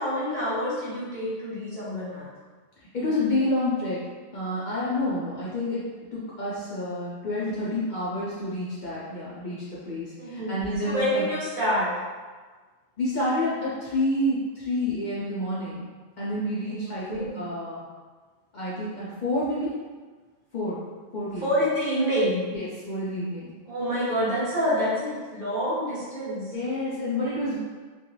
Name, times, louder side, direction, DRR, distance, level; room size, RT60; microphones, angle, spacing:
voice 1, 0.0-2.3 10.2-10.6 10.8-11.9 16.6-17.3 21.4-22.5 23.6-26.5, equal, 55° right, -8 dB, 0.9 m, -27 dB
voice 2, 2.9-4.0 4.3-5.8 6.1-11.2 13.0-15.8 16.2-17.8 18.5-19.7 20.5-20.8 21.1-21.5 22.5-23.5 26.5-27.6, left 1 dB, 55° left, -8 dB, 0.5 m, -29 dB
2.5 x 2.3 x 2.9 m, 1.4 s
omnidirectional pair, 1.2 m